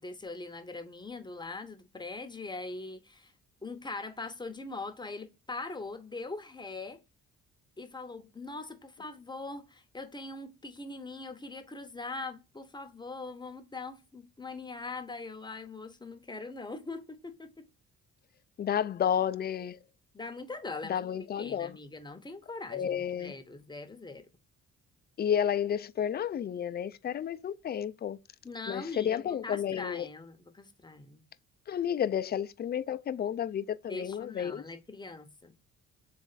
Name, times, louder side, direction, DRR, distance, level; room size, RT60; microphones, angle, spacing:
voice 1, 0.0-3.3 3.6-7.0 7.8-17.7 20.1-21.0 21.4-24.3 28.4-31.2 33.9-35.5, left 3 dB, 15° left, 0.7 m, -42 dB
voice 2, 18.6-19.8 20.8-21.8 22.7-23.3 25.2-28.2 28.7-30.1 31.7-34.6, left 9 dB, 35° left, 0.4 m, -31 dB
3.6 x 3.2 x 4.0 m
cardioid pair, 90°, 30 cm